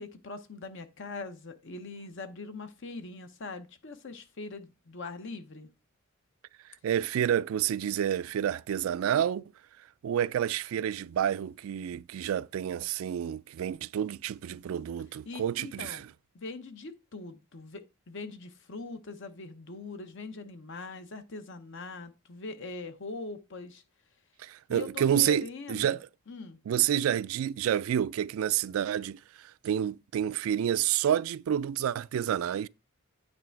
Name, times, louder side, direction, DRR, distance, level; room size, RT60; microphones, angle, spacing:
voice 1, 0.0-5.7 15.3-16.1 16.3-23.8 24.7-26.0 26.3-26.6, left 3 dB, 60° left, 0.8 m, -42 dB
voice 2, 6.8-9.4 10.0-16.0 24.4-26.1 26.7-32.7, right 9 dB, 75° right, 0.3 m, -29 dB
8.9 x 3.3 x 4.5 m
head